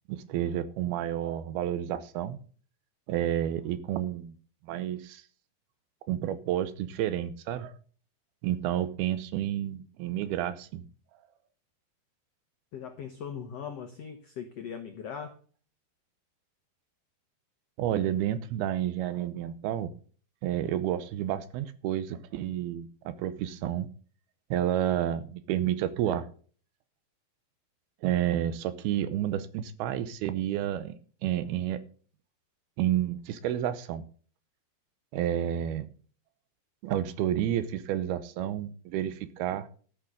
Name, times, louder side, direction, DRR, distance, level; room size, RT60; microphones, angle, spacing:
voice 1, 0.1-2.4 3.1-4.4 4.6-5.2 6.1-7.7 8.4-10.8 17.8-19.9 20.4-23.9 24.5-26.3 28.0-31.0 31.2-31.8 32.8-34.0 35.1-35.9 36.8-39.7, right 11 dB, 80° right, 2.7 m, -30 dB
voice 2, 12.7-15.3, left 7 dB, 90° left, 1.4 m, -39 dB
13.0 x 6.1 x 6.5 m
omnidirectional pair, 4.5 m